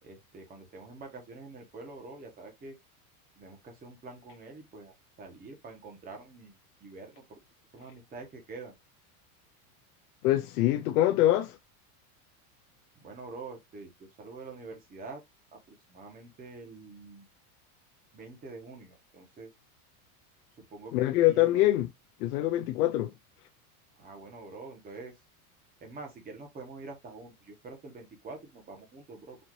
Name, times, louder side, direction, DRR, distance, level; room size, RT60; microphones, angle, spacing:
voice 1, 0.0-2.8 3.4-7.4 7.7-8.7 13.0-13.9 14.2-15.2 15.7-17.2 18.1-19.5 20.7-21.7 24.0-25.1 25.8-29.4, right 3 dB, 20° right, 1.1 m, -46 dB
voice 2, 10.2-11.6 20.9-21.9 22.2-23.1, left 15 dB, 90° left, 0.6 m, -24 dB
4.2 x 2.7 x 3.0 m
supercardioid pair, 150°, 44 cm